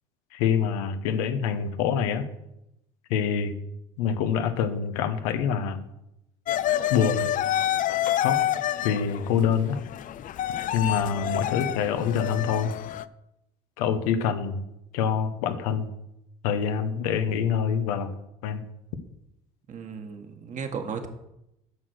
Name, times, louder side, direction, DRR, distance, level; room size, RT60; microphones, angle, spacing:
voice 1, 0.3-2.2 3.1-3.5 4.0-5.8 6.9-7.3 8.2-8.4 8.8-9.8 10.7-12.7 13.8-14.6 14.9-15.9 16.4-18.1 18.4-18.6, left 7 dB, 90° left, 9 dB, 1.0 m, -25 dB
sound 1, 6.5-13.1, left 12 dB, 50° left, 0.5 m, -28 dB
voice 2, 19.7-21.1, right 6 dB, 45° right, 5 dB, 1.7 m, -35 dB
8.6 x 6.2 x 6.4 m, 0.84 s
supercardioid pair, 90°, 18 cm